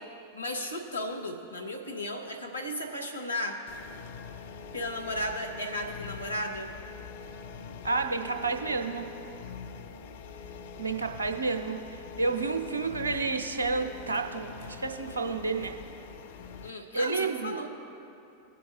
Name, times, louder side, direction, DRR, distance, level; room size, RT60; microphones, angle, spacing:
voice 1, 0.3-3.6 4.7-6.7 16.6-17.7, left 1 dB, 80° left, 3 dB, 1.1 m, -34 dB
sound 1, 3.7-16.7, left 5 dB, 55° left, 0.5 m, -44 dB
voice 2, 7.8-9.0 10.8-15.7 16.9-17.5, right 4 dB, 75° right, 5 dB, 0.7 m, -30 dB
20.0 x 7.7 x 2.6 m, 2.8 s
figure-of-eight pair, 90°, 0 cm